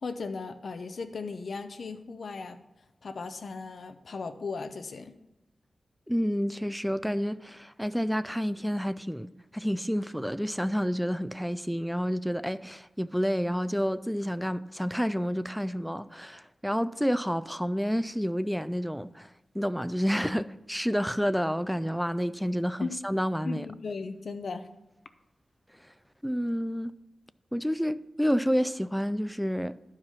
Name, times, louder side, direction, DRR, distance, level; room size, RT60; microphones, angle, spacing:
voice 1, 0.0-2.6 3.0-5.1 22.8-22.9 23.4-24.7, left 4 dB, 65° left, 0.7 m, -37 dB
voice 2, 6.1-19.3 19.5-23.7 26.2-26.9 27.5-29.8, equal, ahead, 0.3 m, -29 dB
11.5 x 4.9 x 5.6 m
wide cardioid pair, 140°, 0 cm